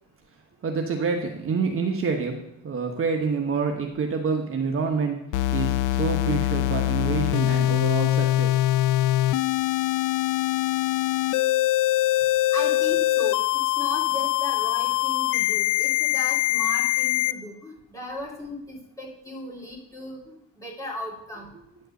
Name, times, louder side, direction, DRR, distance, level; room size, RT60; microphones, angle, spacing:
voice 1, 0.6-2.4 2.6-5.2 5.5-8.6, right 5 dB, 45° right, 2 dB, 1.2 m, -27 dB
sound 1, 5.3-17.3, left 15 dB, 85° left, 0.5 m, -23 dB
voice 2, 12.5-21.5, left 1 dB, 10° left, -3 dB, 3.0 m, -36 dB
9.4 x 4.4 x 6.5 m, 0.84 s
cardioid pair, 90°, 30 cm